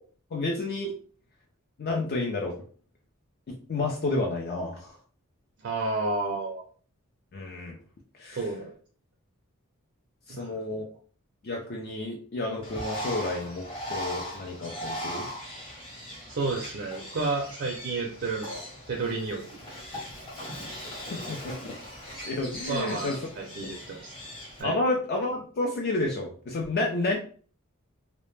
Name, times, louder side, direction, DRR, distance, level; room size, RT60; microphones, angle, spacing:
voice 1, 0.3-0.9 1.8-2.6 3.5-5.0 7.3-7.8 8.2-8.4 10.3-10.8 11.4-15.3 21.1-21.8 22.3-23.2 24.6-27.2, left 2 dB, 45° left, 0 dB, 0.4 m, -30 dB
voice 2, 5.6-6.6 8.3-8.7 10.3-10.6 16.3-19.4 22.7-24.1 24.6-24.8, right 3 dB, 55° right, 1 dB, 0.4 m, -31 dB
Bird, 12.6-24.6, equal, 25° left, 0.8 m, -39 dB
2.0 x 2.0 x 3.1 m, 0.43 s
head